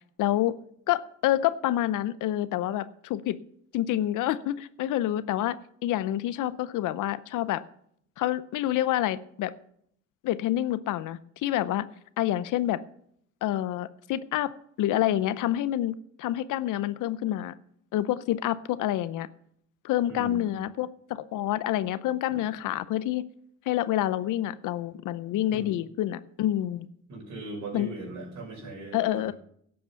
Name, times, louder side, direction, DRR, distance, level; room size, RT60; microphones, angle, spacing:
voice 1, 0.2-0.5 0.9-3.4 3.7-5.6 5.8-7.6 8.2-9.5 10.2-11.8 12.2-12.8 13.4-14.5 14.8-17.5 17.9-19.3 19.8-23.2 23.7-26.9 27.7-27.9 28.9-29.3, left 13 dB, 85° left, 16 dB, 0.7 m, -27 dB
voice 2, 20.1-20.4 22.3-22.4 25.5-25.7 27.1-29.3, right 2 dB, 70° right, -1 dB, 5.9 m, -39 dB
12.0 x 7.8 x 6.9 m, 0.69 s
cardioid pair, 90°, 30 cm